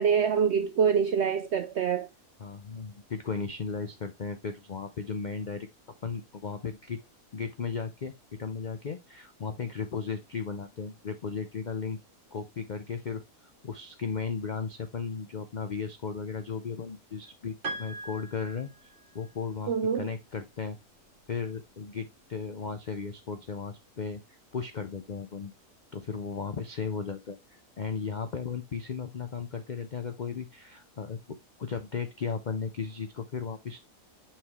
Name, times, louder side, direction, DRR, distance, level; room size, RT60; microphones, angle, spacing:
voice 1, 0.0-2.1 19.7-20.1, right 7 dB, 70° right, 0.6 m, -25 dB
voice 2, 2.4-5.7 6.0-7.0 7.3-8.1 8.4-12.0 12.3-13.2 13.6-20.8 21.3-25.5 25.9-33.8, left 5 dB, 70° left, 0.4 m, -35 dB
Piano, 17.6-19.3, right 3 dB, 45° right, 2.3 m, -40 dB
5.9 x 4.8 x 3.5 m
omnidirectional pair, 1.7 m